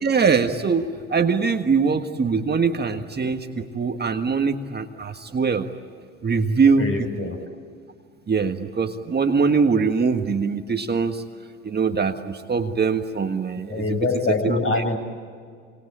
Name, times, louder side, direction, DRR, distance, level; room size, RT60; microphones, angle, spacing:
voice 1, 0.0-5.7 6.2-6.9 8.3-11.2 11.6-13.8 14.3-14.8, right 5 dB, 25° right, 5 dB, 1.7 m, -22 dB
voice 2, 6.8-7.4 13.7-15.0, left 3 dB, 35° left, 5 dB, 5.9 m, -24 dB
27.5 x 24.5 x 8.7 m, 2.1 s
hypercardioid pair, 65°, 37 cm